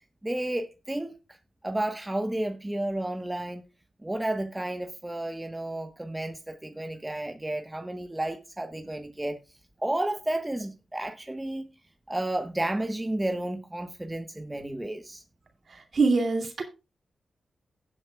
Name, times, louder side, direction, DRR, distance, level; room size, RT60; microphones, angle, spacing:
voice 1, 0.2-1.1 1.6-3.6 4.0-9.4 9.8-11.7 12.1-15.2, right 1 dB, 15° right, 1.2 m, -32 dB
voice 2, 15.7-16.6, right 3 dB, 60° right, 2.6 m, -24 dB
17.5 x 7.7 x 2.3 m
supercardioid pair, 45°, 0 cm